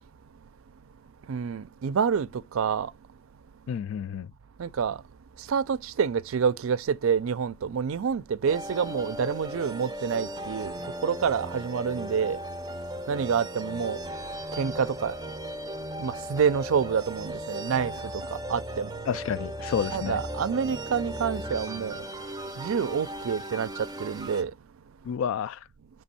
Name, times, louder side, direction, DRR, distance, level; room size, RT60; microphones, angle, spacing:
voice 1, 1.3-2.3 2.5-2.9 4.6-5.0 5.5-10.7 11.0-12.4 13.1-14.0 14.6-15.1 16.0-17.9 18.5-18.9 19.9-21.9 22.6-23.7 24.0-24.5, right 6 dB, 70° right, 0.4 m, -27 dB
voice 2, 3.7-4.3 19.1-20.2 25.0-25.6, left 7 dB, 65° left, 0.3 m, -30 dB
sound 1, 8.5-24.4, right 1 dB, 20° right, 0.6 m, -37 dB
5.3 x 3.3 x 5.6 m
head